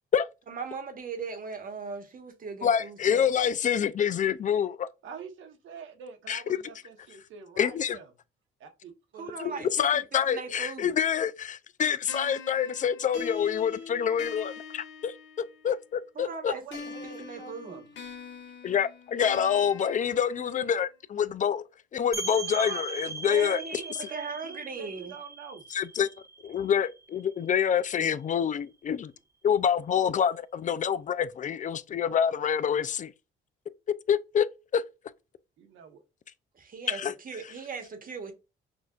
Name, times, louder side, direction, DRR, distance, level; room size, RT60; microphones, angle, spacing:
voice 1, 0.5-3.3 9.1-11.0 16.1-17.8 23.3-25.1 36.5-38.3, right 5 dB, 45° right, 1.2 m, -39 dB
voice 2, 2.6-4.9 6.3-6.6 7.6-8.0 9.4-15.1 15.6-16.5 18.6-21.6 21.9-23.6 24.0-24.1 25.7-26.1 26.4-29.1 29.4-33.1 34.1-34.5 34.7-34.8 36.9-37.1, left 8 dB, 40° left, 0.4 m, -27 dB
voice 3, 5.0-8.1 8.6-9.7 16.5-17.8 22.3-25.6 35.6-36.0, right 6 dB, 75° right, 1.1 m, -45 dB
sound 1, 12.1-15.7 16.7-20.7, left 5 dB, 70° left, 1.3 m, -43 dB
sound 2, 22.1-27.6, right 4 dB, 15° right, 0.6 m, -39 dB
6.1 x 2.6 x 2.4 m
cardioid pair, 90°, 20 cm